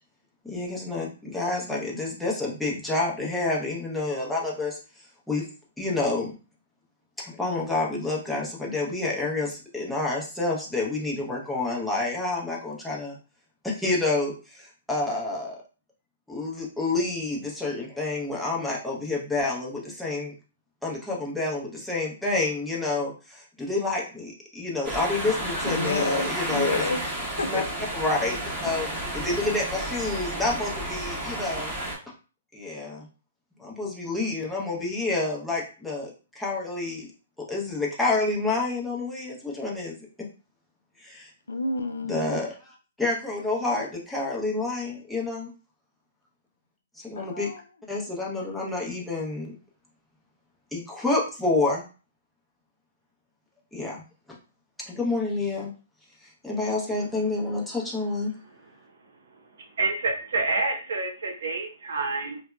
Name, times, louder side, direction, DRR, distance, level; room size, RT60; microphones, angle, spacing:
voice 1, 0.4-5.4 5.8-6.4 7.2-13.2 13.6-15.6 16.3-20.3 20.8-26.8 27.5-27.6 27.9-28.9 29.1-31.7 32.5-33.1 33.6-37.1 37.5-40.3 41.0-41.3 42.1-45.5 47.0-47.5 47.9-49.5 50.7-51.8 53.7-54.0 54.9-55.7 56.2-58.3, left 2 dB, 5° left, -4 dB, 0.7 m, -29 dB
sound 1, 24.8-32.0, right 1 dB, 15° right, 1.0 m, -31 dB
voice 2, 25.6-27.7 41.5-42.4 47.2-47.6, left 3 dB, 85° left, 7 dB, 0.3 m, -29 dB
voice 3, 59.8-62.4, right 3 dB, 70° right, 2 dB, 0.8 m, -28 dB
2.7 x 2.2 x 2.2 m, 0.36 s
hypercardioid pair, 130°, 0 cm